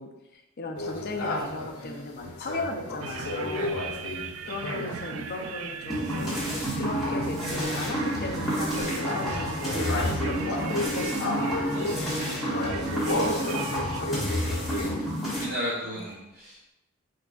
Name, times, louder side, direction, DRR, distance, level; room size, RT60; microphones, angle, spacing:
voice 1, 0.0-3.7 4.5-6.3 6.7-11.6 12.5-12.8 13.2-14.6 14.8-15.1 15.8-16.0, left 2 dB, 45° left, 3 dB, 0.5 m, -37 dB
sound 1, 0.8-5.1 5.9-15.1, left 2 dB, 90° left, 0.8 m, -34 dB
sound 2, 3.0-14.0, right 6 dB, 70° right, 0.3 m, -38 dB
voice 2, 3.5-3.9 11.7-12.4 14.7-15.0 15.3-16.7, equal, 40° right, -7 dB, 0.8 m, -36 dB
sound 3, 5.9-15.4, equal, ahead, 1.5 m, -30 dB
4.5 x 3.8 x 2.4 m, 0.94 s
head